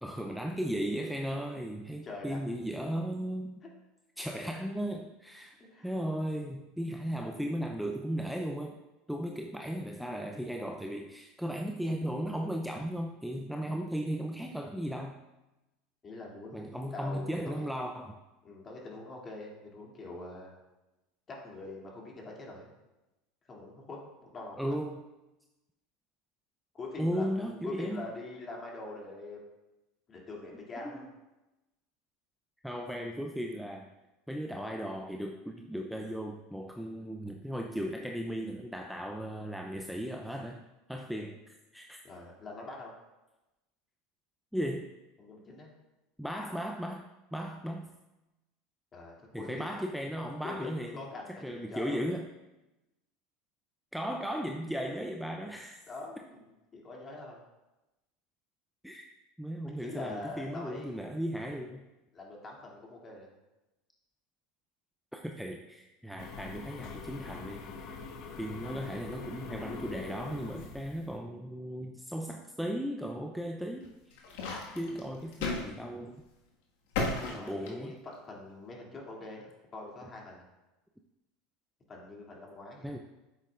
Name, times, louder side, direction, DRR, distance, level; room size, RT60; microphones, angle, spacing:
voice 1, 0.0-3.6 4.2-5.6 5.8-8.7 9.1-15.2 16.5-18.2 24.6-25.0 27.0-28.1 30.8-30.9 32.6-33.9 34.3-40.6 40.9-41.4 41.7-42.0 44.5-44.9 46.2-47.0 47.3-47.9 49.3-52.3 53.9-55.8 58.8-59.1 59.4-61.9 65.1-68.0 68.4-73.9 74.2-74.3 74.7-76.2 77.1-77.9 82.8-83.0, equal, ahead, 2 dB, 0.5 m, -36 dB
voice 2, 2.0-2.4 3.6-3.7 5.6-5.9 16.0-17.7 18.4-20.5 21.3-22.7 23.5-24.8 26.7-29.4 30.1-31.0 42.0-42.9 45.2-45.7 48.9-49.7 50.4-52.0 55.9-56.4 56.7-57.4 59.7-61.2 62.1-63.3 77.3-80.4 81.9-82.9, left 2 dB, 30° left, -2 dB, 2.5 m, -44 dB
sound 1, 66.2-71.2, left 4 dB, 55° left, 1.0 m, -44 dB
sound 2, 73.8-75.7 76.0-76.2 76.9-78.2, left 3 dB, 75° left, 1.6 m, -34 dB
9.5 x 7.9 x 2.5 m, 1.0 s
hypercardioid pair, 95°, 0 cm